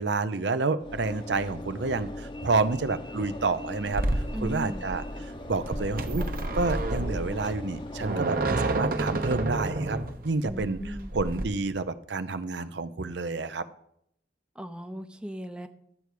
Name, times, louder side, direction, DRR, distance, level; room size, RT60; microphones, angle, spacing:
voice 1, 0.0-4.0 4.4-5.0 5.5-6.3 6.5-10.0 10.2-10.8 11.1-13.6, right 3 dB, 75° right, 12 dB, 0.7 m, -29 dB
Train / Engine / Alarm, 0.8-9.0, left 1 dB, 25° left, 0.8 m, -40 dB
sound 1, 3.9-11.4, right 2 dB, 50° right, 1.0 m, -30 dB
voice 2, 4.3-4.8 10.4-11.1 14.6-15.7, equal, 5° right, 8 dB, 0.6 m, -37 dB
12.5 x 4.7 x 8.4 m, 0.73 s
head